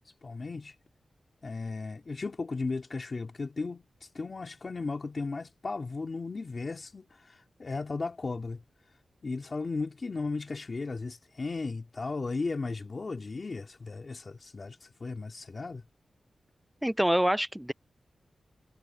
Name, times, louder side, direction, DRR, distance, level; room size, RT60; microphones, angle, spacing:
voice 1, 0.2-0.7 1.4-8.6 9.2-15.8, left 3 dB, 35° left, 2.6 m, -36 dB
voice 2, 16.8-17.7, equal, 5° right, 0.5 m, -26 dB
wide cardioid pair, 165°, 0 cm